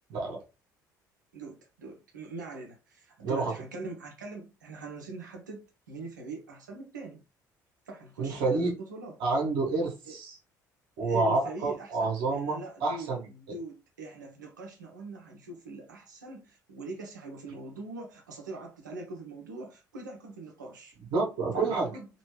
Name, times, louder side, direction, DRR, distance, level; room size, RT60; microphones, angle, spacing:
voice 1, 1.3-7.2 7.9-9.2 10.1-10.2 11.0-21.0 21.5-22.1, right 2 dB, 80° right, 0.9 m, -42 dB
voice 2, 3.2-3.5 8.2-8.7 9.2-10.4 11.0-13.6 21.1-21.9, right 3 dB, 60° right, 1.2 m, -29 dB
3.0 x 2.6 x 3.1 m
figure-of-eight pair, 50°, 10 cm